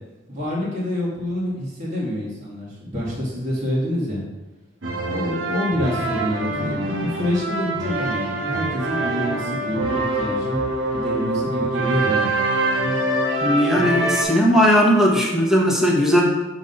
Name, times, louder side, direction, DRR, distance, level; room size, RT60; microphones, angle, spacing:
voice 1, 0.3-4.2 5.1-10.6 10.9-12.3, left 1 dB, 40° right, -7 dB, 2.2 m, -26 dB
sound 1, 4.8-14.2, right 2 dB, 80° right, 1.4 m, -24 dB
voice 2, 13.4-16.2, equal, 5° right, -3 dB, 1.3 m, -17 dB
6.4 x 4.0 x 5.4 m, 1.1 s
head